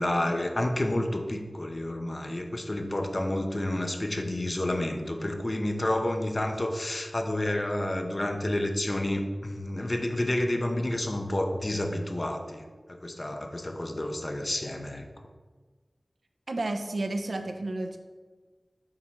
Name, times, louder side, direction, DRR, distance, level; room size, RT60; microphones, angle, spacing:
voice 1, 0.0-15.3, left 1 dB, 40° left, 5 dB, 0.7 m, -30 dB
voice 2, 16.5-18.0, right 2 dB, 75° right, 6 dB, 0.6 m, -31 dB
7.4 x 3.1 x 6.1 m, 1.4 s
wide cardioid pair, 65°, 0 cm